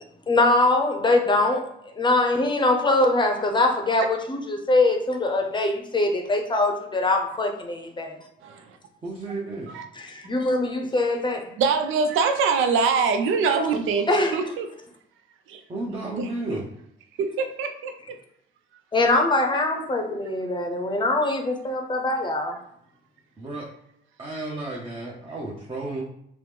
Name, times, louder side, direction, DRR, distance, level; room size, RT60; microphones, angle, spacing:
voice 1, 0.3-1.7 1.9-8.2 9.9-11.5 14.1-14.4 18.9-22.6, left 2 dB, 25° left, 2 dB, 0.6 m, -22 dB
voice 2, 8.4-8.8 9.7-9.8 11.6-14.7 15.5-15.6 15.9-16.5 17.2-17.9, right 5 dB, 90° right, 7 dB, 0.5 m, -24 dB
voice 3, 9.0-9.7 15.7-16.6 23.4-23.6 24.2-26.0, right 2 dB, 25° right, -5 dB, 0.7 m, -32 dB
3.0 x 2.0 x 3.4 m, 0.74 s
cardioid pair, 90°, 20 cm